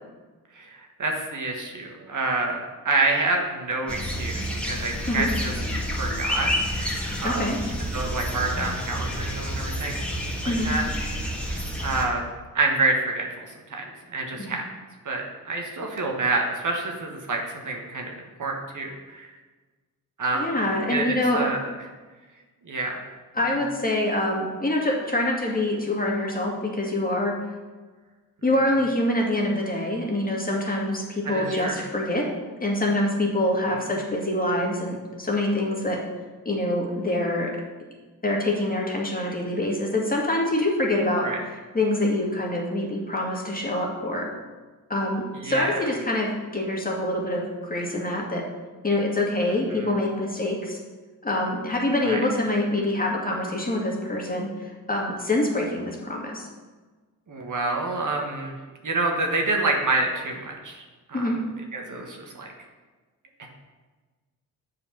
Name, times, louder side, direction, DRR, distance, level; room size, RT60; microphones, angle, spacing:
voice 1, 0.5-5.5 6.0-6.9 7.2-7.5 7.8-10.9 11.8-12.2 12.5-14.6 15.0-19.3 20.2-20.5 20.9-21.6 22.6-23.0 31.2-31.8 33.7-33.8 41.2-41.4 45.4-45.7 49.8-49.9 52.0-52.2 57.3-58.5 58.8-60.8 61.1-61.3 61.7-62.5 63.4-63.5, right 3 dB, 50° right, 1 dB, 1.5 m, -28 dB
sound 1, 3.9-12.1, equal, 5° left, 1.8 m, -29 dB
voice 2, 7.2-7.6 10.5-10.7 14.4-14.5 20.3-21.4 23.3-27.4 28.4-32.2 32.6-36.0 36.5-37.6 38.2-41.3 41.7-44.3 44.9-48.4 48.8-50.8 51.2-56.5 61.1-61.4, left 1 dB, 20° left, -1 dB, 2.0 m, -25 dB
7.3 x 4.9 x 6.0 m, 1.3 s
cardioid pair, 60°, 38 cm